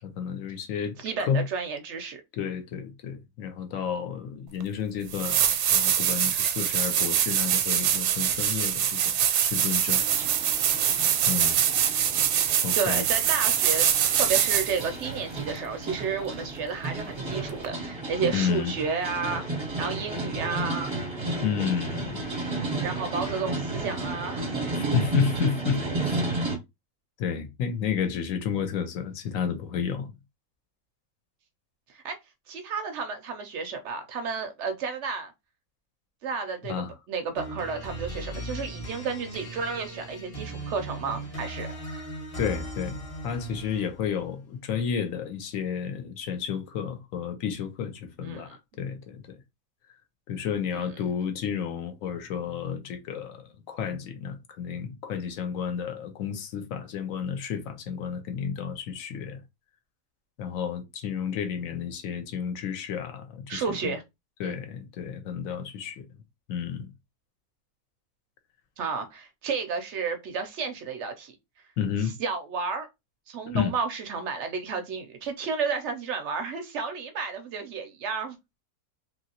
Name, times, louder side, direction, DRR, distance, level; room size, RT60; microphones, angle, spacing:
voice 1, 0.0-1.4 2.3-5.4 5.7-9.1 9.4-10.0 11.3-11.6 12.6-13.0 18.3-18.7 21.4-22.3 24.8-26.2 27.2-30.1 36.7-36.9 42.4-49.4 50.3-59.4 60.4-63.9 64.4-66.1 66.5-66.9 71.8-72.1 73.5-73.7, left 7 dB, 70° left, 1.0 m, -31 dB
voice 2, 1.0-2.2 12.7-13.9 14.1-19.4 19.8-20.9 22.8-24.6 31.9-32.2 32.5-35.3 36.2-36.8 37.1-41.7 48.2-48.6 50.7-50.8 63.5-64.0 64.4-64.6 68.8-71.4 72.2-72.9 73.3-78.4, right 5 dB, 70° right, 0.7 m, -32 dB
sound 1, 4.6-4.7 5.1-14.9 17.6-17.7, right 9 dB, 85° right, 1.1 m, -24 dB
sound 2, 9.9-26.6, right 2 dB, 25° right, 0.6 m, -33 dB
sound 3, 37.4-44.1, right 1 dB, 30° left, 0.7 m, -38 dB
2.9 x 2.6 x 2.8 m
omnidirectional pair, 1.6 m